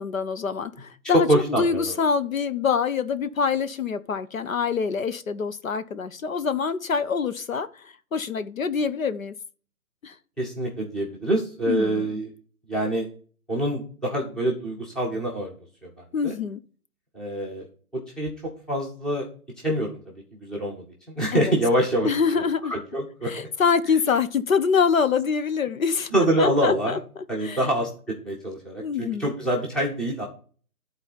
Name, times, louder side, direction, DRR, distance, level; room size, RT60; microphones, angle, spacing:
voice 1, 0.0-9.3 10.0-10.1 11.7-12.1 16.1-16.6 21.3-21.5 22.0-22.7 23.2-27.0 27.4-27.6 28.8-29.3, left 6 dB, 60° left, 0.9 m, -25 dB
voice 2, 1.1-1.9 10.4-12.3 12.7-13.1 13.5-15.5 15.8-15.9 16.2-16.3 17.1-17.7 17.9-18.3 18.7-19.3 19.6-20.1 20.4-22.1 22.7-23.3 26.1-27.0 27.3-30.2, right 1 dB, ahead, 0.8 m, -25 dB
11.5 x 4.1 x 5.5 m
figure-of-eight pair, 145°, 45 cm